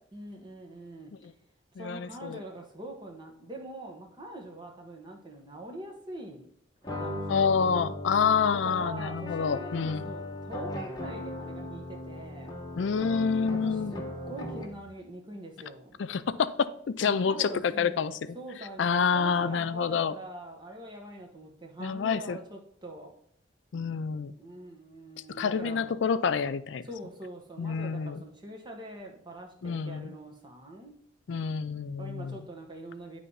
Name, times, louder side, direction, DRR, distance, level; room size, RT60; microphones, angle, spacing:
voice 1, 0.1-1.1 1.8-6.5 6.8-7.8 8.5-12.5 13.5-16.0 17.1-23.1 24.4-25.9 26.9-30.9 32.0-33.2, right 1 dB, 25° right, 1.3 m, -44 dB
voice 2, 1.8-2.4 7.3-10.0 12.8-13.9 16.0-16.7 17.0-18.1 18.8-20.2 21.8-22.4 23.7-24.3 25.4-26.9 27.6-28.2 29.6-30.1 31.3-32.5, left 6 dB, 85° left, 0.4 m, -28 dB
sound 1, 6.8-14.9, left 1 dB, 20° left, 1.0 m, -38 dB
9.5 x 3.3 x 5.5 m
head